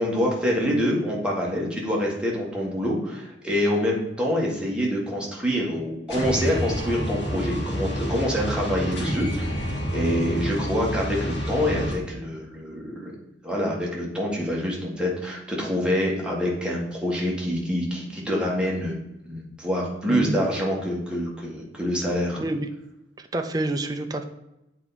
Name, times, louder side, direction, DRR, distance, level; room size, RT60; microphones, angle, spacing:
voice 1, 0.0-9.6 9.9-13.1 13.4-18.9 19.2-22.4, equal, 5° right, -4 dB, 1.5 m, -26 dB
sound 1, 6.1-11.9, equal, 70° left, 2.2 m, -28 dB
voice 2, 22.3-22.7 23.3-24.2, right 1 dB, 20° right, 5 dB, 0.5 m, -27 dB
7.8 x 4.5 x 4.1 m, 0.91 s
head